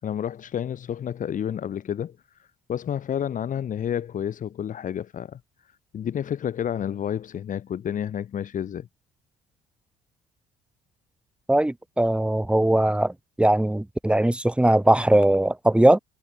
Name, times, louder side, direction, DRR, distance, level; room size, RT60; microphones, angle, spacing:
voice 1, 0.0-2.2 2.7-5.4 5.9-8.9, left 9 dB, 50° left, 4.3 m, -30 dB
voice 2, 11.5-16.0, right 1 dB, 5° right, 3.4 m, -20 dB
cardioid pair, 110°, 17 cm